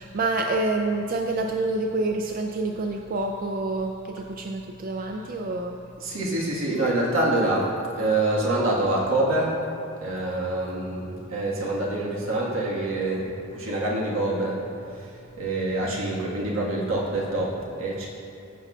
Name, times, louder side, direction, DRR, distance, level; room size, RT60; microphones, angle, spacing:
voice 1, 0.0-5.7, right 2 dB, 45° right, 3 dB, 0.3 m, -27 dB
voice 2, 6.0-9.5 10.0-13.3 13.5-14.6 15.4-18.1, right 2 dB, 75° right, -4 dB, 1.4 m, -26 dB
14.5 x 5.8 x 2.3 m, 2.7 s
head